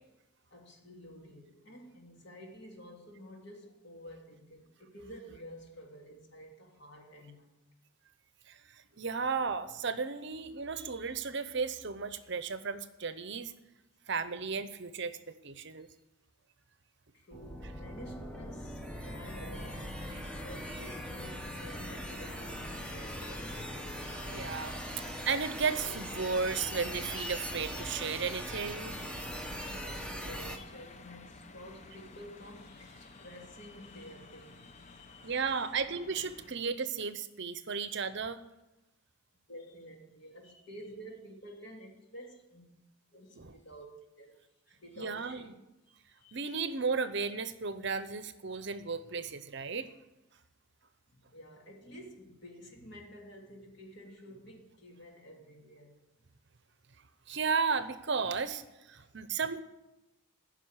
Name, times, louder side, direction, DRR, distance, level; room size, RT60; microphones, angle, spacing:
voice 1, 0.5-7.5 15.8-15.9 17.1-23.9 29.6-35.7 37.7-37.8 39.5-42.6 43.1-43.9 44.2-45.5 45.9-46.6 48.5-48.6 51.1-55.9 59.0-59.1, equal, 50° left, 0 dB, 2.9 m, -51 dB
voice 2, 8.5-13.5 14.1-15.9 24.3-29.0 35.2-38.4 43.4-43.5 45.0-45.5 46.3-49.9 57.3-58.6 58.9-59.6, right 5 dB, 55° right, 12 dB, 0.8 m, -34 dB
sound 1, 17.3-30.6, equal, 5° left, 1.1 m, -41 dB
sound 2, 19.5-36.5, left 3 dB, 35° left, 0.7 m, -52 dB
15.0 x 6.2 x 9.7 m, 0.98 s
head